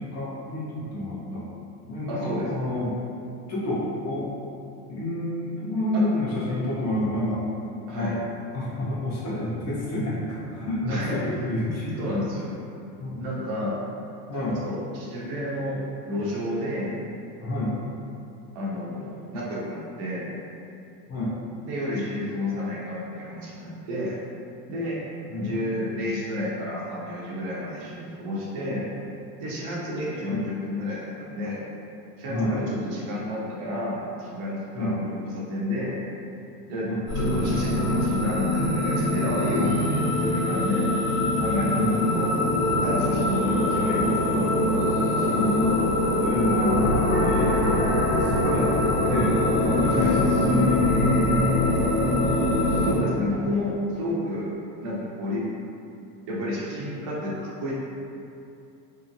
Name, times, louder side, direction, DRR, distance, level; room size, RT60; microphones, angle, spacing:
voice 1, 0.0-1.5 1.9-3.0 3.5-4.3 4.9-7.4 7.9-8.2 8.5-12.1 13.0-13.4 14.3-14.6 17.4-17.7 21.1-21.3 25.3-25.6 30.3-30.4 32.2-32.5 34.7-35.0 36.8-37.0 41.7-42.0 45.3-45.8 46.2-47.9 48.2-48.7 49.0-49.4 49.8-52.0, left 1 dB, 30° left, -8 dB, 0.7 m, -29 dB
voice 2, 2.1-2.5 5.9-6.0 7.9-8.2 10.9-11.2 12.0-12.5 13.2-13.8 14.3-17.0 18.5-20.3 21.7-24.2 24.7-25.0 25.4-28.9 29.4-31.6 32.2-36.0 36.7-40.9 41.4-42.3 42.8-44.4 44.9-45.4 49.9-50.2 52.4-54.5 54.8-55.4 56.3-57.7, left 1 dB, 45° right, -6 dB, 0.8 m, -31 dB
sound 1, 37.1-53.0, left 1 dB, 60° left, 1.2 m, -23 dB
2.8 x 2.0 x 2.6 m, 2.6 s
hypercardioid pair, 105°, 49 cm